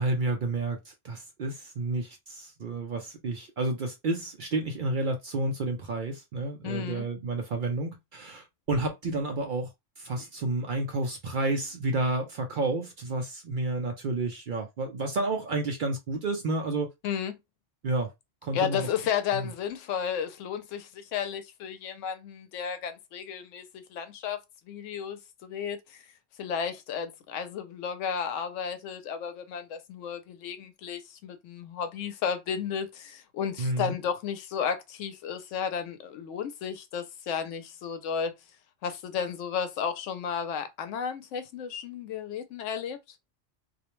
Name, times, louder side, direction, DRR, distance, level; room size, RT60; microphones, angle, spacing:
voice 1, 0.0-9.7 10.0-16.9 17.8-18.1 18.4-18.9 19.3-19.5 33.6-34.0, right 2 dB, 60° right, 0.5 m, -30 dB
voice 2, 6.6-7.1 17.0-17.4 18.5-24.4 24.7-26.1 26.4-38.3 38.8-43.0, left 7 dB, 90° left, 0.9 m, -33 dB
2.4 x 2.1 x 2.9 m
omnidirectional pair, 1.2 m